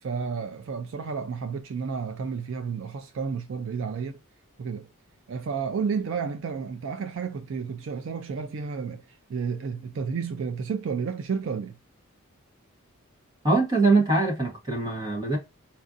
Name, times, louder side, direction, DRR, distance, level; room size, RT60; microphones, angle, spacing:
voice 1, 0.0-4.2 4.6-4.9 5.3-11.8, right 5 dB, 60° right, 0.3 m, -31 dB
voice 2, 13.4-15.4, right 3 dB, 20° right, 1.1 m, -22 dB
4.2 x 2.5 x 2.5 m
head